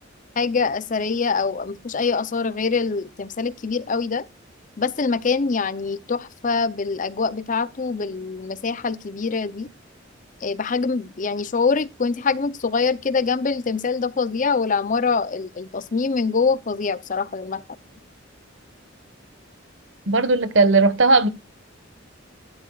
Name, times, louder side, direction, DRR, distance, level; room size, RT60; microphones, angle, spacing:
voice 1, 0.4-4.2 4.8-9.7 10.4-17.6, left 4 dB, 40° left, 0.6 m, -24 dB
voice 2, 20.1-21.3, right 3 dB, 70° right, 1.5 m, -17 dB
13.0 x 12.5 x 2.4 m
head